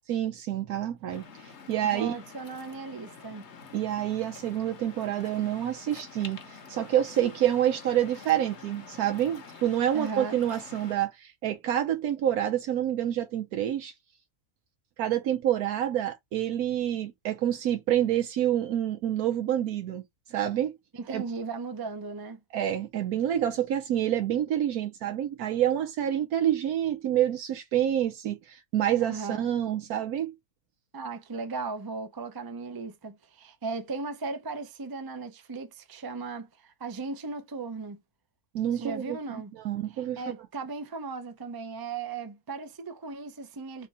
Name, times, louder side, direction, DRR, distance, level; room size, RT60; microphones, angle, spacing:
voice 1, 0.1-2.2 3.7-13.9 15.0-20.0 20.3-20.7 21.1-21.2 22.5-30.3 38.5-40.2, right 11 dB, 80° right, 1.2 m, -28 dB
Waves surf, 1.1-11.0, left 5 dB, 55° left, 1.1 m, -48 dB
voice 2, 1.8-3.5 9.9-10.4 20.9-22.4 29.0-29.5 30.9-38.0 38.7-39.5 39.9-43.9, right 4 dB, 30° right, 0.4 m, -37 dB
3.5 x 3.5 x 4.1 m
omnidirectional pair, 1.6 m